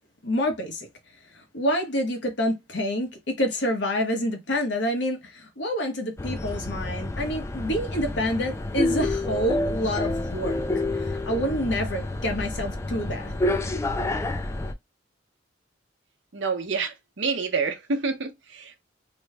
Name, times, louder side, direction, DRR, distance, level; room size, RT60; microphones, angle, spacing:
voice 1, 0.2-0.9 1.3-10.6 10.9-13.3, equal, 65° left, 1.1 m, -28 dB
sound 1, 6.2-14.7, left 2 dB, 15° left, 0.4 m, -29 dB
voice 2, 16.3-18.8, right 4 dB, 75° right, 0.8 m, -28 dB
3.1 x 2.1 x 3.4 m
head